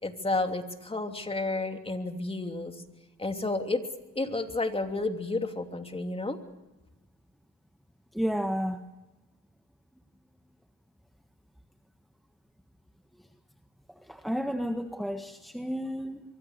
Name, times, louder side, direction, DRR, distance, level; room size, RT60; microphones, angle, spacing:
voice 1, 0.0-2.8 3.2-3.8 4.1-6.4, left 2 dB, 20° left, 5 dB, 3.0 m, -31 dB
voice 2, 8.1-8.8 14.1-16.2, equal, ahead, 7 dB, 1.5 m, -31 dB
24.0 x 23.5 x 6.7 m, 1.1 s
cardioid pair, 90°, 30 cm